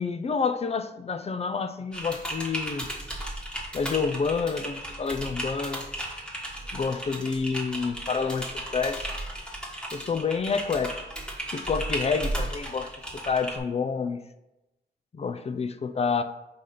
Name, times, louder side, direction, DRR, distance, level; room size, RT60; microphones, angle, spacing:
voice 1, 0.0-2.9 3.7-5.9 6.7-9.1 9.9-11.0 11.5-14.2 15.1-16.2, left 5 dB, 35° left, 9 dB, 0.4 m, -28 dB
Typing, 1.9-13.6, right 1 dB, 5° left, 1.3 m, -35 dB
4.9 x 3.9 x 5.7 m, 0.95 s
wide cardioid pair, 130°, 18 cm